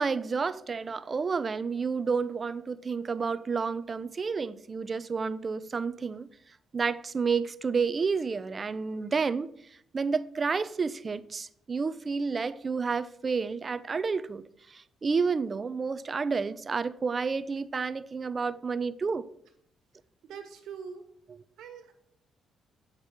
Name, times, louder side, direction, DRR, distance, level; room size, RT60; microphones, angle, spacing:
voice 1, 0.0-6.3 6.7-9.5 9.9-14.5 14.7-19.3, right 5 dB, 35° right, 0.5 m, -30 dB
voice 2, 20.2-21.0 21.6-21.9, right 6 dB, 80° right, 1.6 m, -43 dB
8.1 x 5.1 x 7.5 m
cardioid pair, 90°, 0 cm